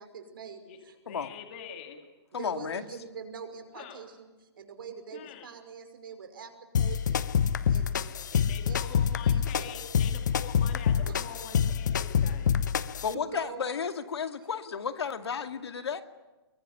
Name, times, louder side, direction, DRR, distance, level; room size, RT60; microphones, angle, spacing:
voice 1, 0.0-1.0 2.3-7.3 7.7-9.8 11.0-11.4 13.1-13.7 14.4-14.5, right 6 dB, 55° right, 6 dB, 5.7 m, -45 dB
voice 2, 1.1-2.0 3.7-4.0 5.1-5.5 8.3-12.5, left 8 dB, 25° left, 4 dB, 2.3 m, -45 dB
voice 3, 2.3-2.8 13.0-16.0, left 6 dB, 75° left, 7 dB, 2.3 m, -33 dB
sound 1, 6.7-13.1, left 7 dB, 45° left, 0.9 m, -27 dB
24.0 x 23.0 x 9.8 m, 1.1 s
hypercardioid pair, 180°, 14 cm